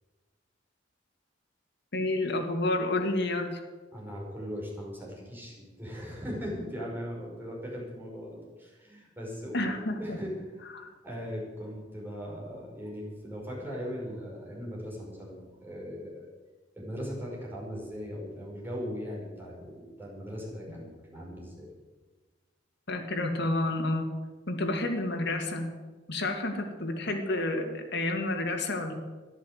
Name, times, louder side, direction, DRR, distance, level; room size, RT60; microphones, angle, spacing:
voice 1, 1.9-3.6 9.5-10.2 10.7-10.9 22.9-24.1 24.5-25.7 26.1-28.9, left 2 dB, 65° left, 4 dB, 2.2 m, -30 dB
voice 2, 3.9-16.3 16.8-21.7, equal, 10° right, -4 dB, 5.4 m, -39 dB
13.5 x 11.5 x 8.0 m, 1.3 s
head